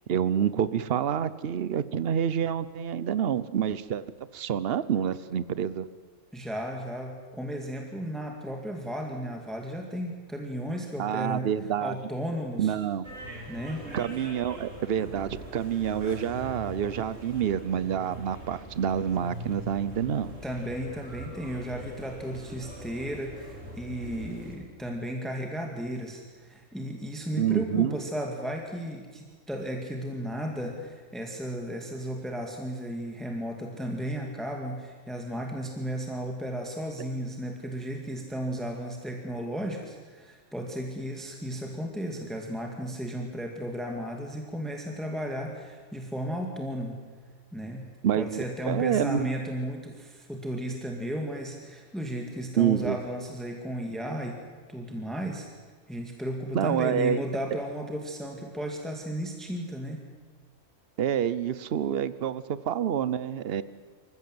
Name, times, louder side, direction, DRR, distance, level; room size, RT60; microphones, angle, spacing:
voice 1, 0.1-4.0 4.3-5.8 11.0-12.0 12.6-13.1 13.9-20.4 27.4-28.0 48.0-49.3 52.6-53.0 56.5-57.2 61.0-63.6, right 9 dB, 55° right, 16 dB, 1.0 m, -27 dB
voice 2, 6.3-11.5 11.8-12.8 13.5-13.9 20.4-47.0 47.5-54.4 54.7-55.5 55.9-60.0, equal, ahead, 2 dB, 2.1 m, -34 dB
sound 1, 13.0-24.6, equal, 90° right, 4.0 m, -42 dB
26.5 x 15.5 x 7.8 m, 1.5 s
omnidirectional pair, 1.3 m